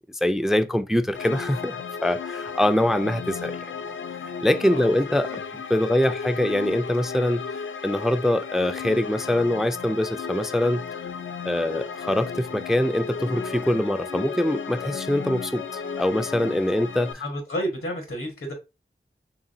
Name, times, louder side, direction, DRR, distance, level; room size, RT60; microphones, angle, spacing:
voice 1, 0.1-3.7 4.2-5.4 5.7-7.4 7.8-10.8 11.5-17.2, left 1 dB, ahead, 0.3 m, -24 dB
sound 1, 1.1-17.1, left 6 dB, 70° left, 0.4 m, -34 dB
voice 2, 5.8-6.1 17.2-18.5, equal, 85° left, 1.7 m, -31 dB
3.8 x 3.5 x 2.6 m
wide cardioid pair, 45°, 21 cm